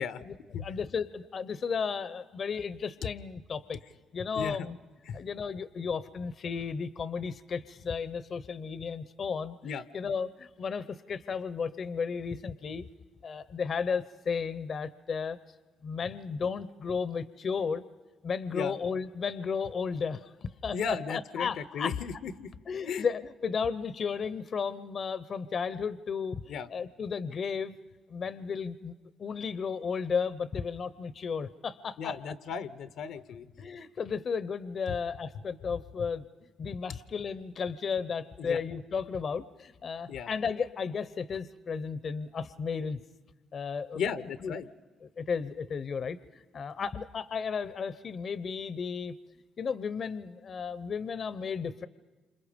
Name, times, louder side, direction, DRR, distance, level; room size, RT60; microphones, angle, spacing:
voice 1, 0.2-3.8 4.1-4.8 5.1-12.8 13.2-15.4 15.8-17.8 18.2-22.0 22.7-27.8 28.1-28.9 29.2-32.2 33.6-43.0 43.5-44.0 44.4-44.5 45.2-49.1 49.6-51.9, left 6 dB, 50° left, 16 dB, 0.7 m, -34 dB
voice 2, 20.7-21.5 21.7-22.5 22.9-23.1 26.5-26.7 32.0-33.5 38.4-38.6 40.1-40.3 43.9-44.7, left 6 dB, 80° left, 13 dB, 0.9 m, -35 dB
28.5 x 26.5 x 5.2 m, 1.3 s
cardioid pair, 90°, 0 cm